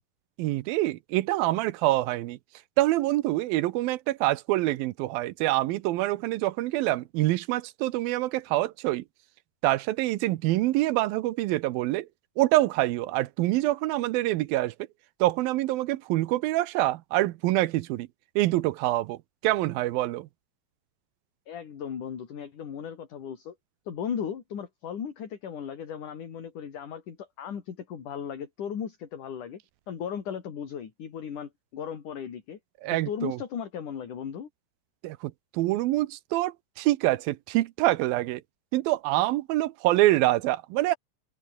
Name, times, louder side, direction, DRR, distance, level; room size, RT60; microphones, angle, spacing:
voice 1, 0.4-2.4 2.8-9.0 9.6-12.1 12.4-14.7 15.2-18.1 18.4-19.2 19.4-20.3 32.8-33.4 35.0-38.4 38.7-41.0, right 17 dB, 75° right, 2.4 m, -26 dB
voice 2, 21.5-23.6 23.9-29.6 29.9-32.6 32.9-34.5, left 8 dB, 55° left, 4.2 m, -36 dB
omnidirectional pair, 4.7 m